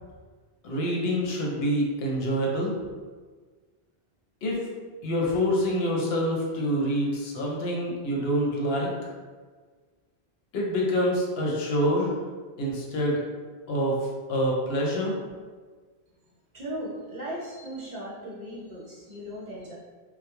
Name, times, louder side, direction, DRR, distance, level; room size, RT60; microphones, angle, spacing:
voice 1, 0.6-2.7 4.4-4.6 5.0-8.9 10.5-12.1 12.6-13.2 13.7-14.0 14.3-15.2, equal, 75° left, -2 dB, 0.8 m, -26 dB
voice 2, 16.5-19.7, right 1 dB, 50° right, -6 dB, 0.6 m, -37 dB
2.2 x 2.1 x 2.8 m, 1.5 s
omnidirectional pair, 1.1 m